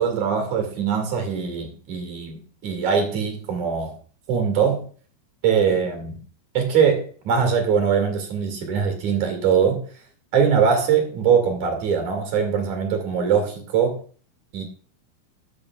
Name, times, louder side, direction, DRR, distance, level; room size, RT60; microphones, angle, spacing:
voice 1, 0.0-4.0 4.3-4.9 5.4-6.2 6.5-9.8 10.3-14.0 14.5-14.6, right 7 dB, 50° right, 3.2 m, -22 dB
14.0 x 8.9 x 2.4 m
omnidirectional pair, 4.9 m